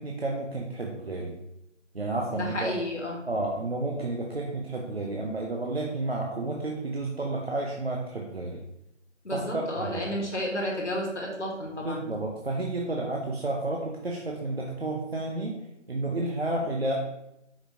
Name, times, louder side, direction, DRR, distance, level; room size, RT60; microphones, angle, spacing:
voice 1, 0.0-1.3 1.9-2.7 3.3-8.6 9.3-10.1 11.8-15.6 15.9-16.9, right 2 dB, 55° right, -1 dB, 0.5 m, -31 dB
voice 2, 2.3-3.2 9.2-12.0, left 1 dB, 70° left, -1 dB, 1.3 m, -32 dB
4.9 x 3.4 x 2.6 m, 0.83 s
figure-of-eight pair, 175°, 37 cm